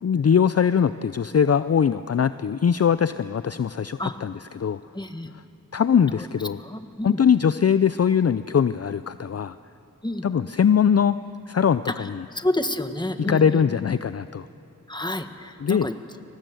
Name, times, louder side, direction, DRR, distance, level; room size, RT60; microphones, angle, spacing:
voice 1, 0.0-4.8 5.7-6.6 7.0-9.6 10.2-11.2 11.5-12.2 13.3-14.4 15.6-15.9, left 7 dB, 45° left, 14 dB, 0.5 m, -21 dB
voice 2, 4.9-5.3 6.1-6.3 6.6-7.2 10.0-10.2 11.9-13.7 14.9-16.0, left 1 dB, 10° left, 8 dB, 1.5 m, -29 dB
24.5 x 18.5 x 7.9 m, 2.7 s
cardioid pair, 40°, 34 cm